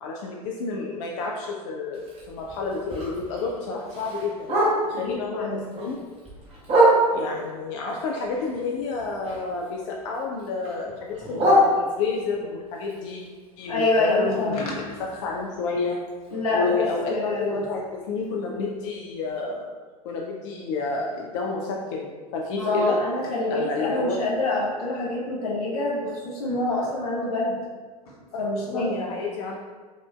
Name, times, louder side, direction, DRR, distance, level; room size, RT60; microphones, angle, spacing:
voice 1, 0.0-4.5 4.9-5.4 5.7-6.0 7.1-13.2 13.6-14.8 15.1-16.0 16.5-19.7 20.0-23.0 23.5-24.2 28.3-28.4 28.7-29.6, left 4 dB, 50° left, -1 dB, 0.4 m, -30 dB
Bark, 1.9-5.1 5.5-7.4 7.9-9.7 10.0-12.3 12.8-16.7 17.0-17.1 17.4-17.8 18.2-18.3 18.7-18.8 19.3-19.4, right 1 dB, 30° right, 1.2 m, -26 dB
voice 2, 4.9-5.6 13.7-14.7 16.3-16.8 17.1-17.6 22.6-27.6 28.1-29.1, left 2 dB, 70° left, -3 dB, 1.0 m, -26 dB
5.2 x 2.5 x 2.2 m, 1.5 s
figure-of-eight pair, 80°, 20 cm